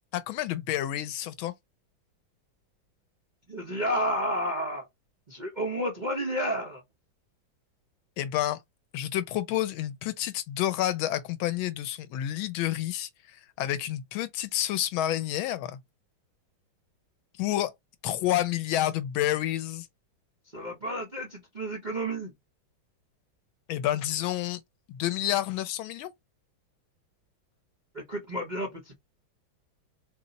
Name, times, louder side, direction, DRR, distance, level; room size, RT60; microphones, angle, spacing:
voice 1, 0.1-1.5 8.2-8.6 8.9-13.1 13.6-15.8 17.4-17.7 18.0-19.9 23.7-24.6 24.9-26.1, left 13 dB, 80° left, 1.4 m, -29 dB
voice 2, 3.5-4.8 5.3-6.8 20.5-22.3 27.9-28.9, equal, 45° right, 0.6 m, -31 dB
4.1 x 2.0 x 3.9 m
omnidirectional pair, 2.2 m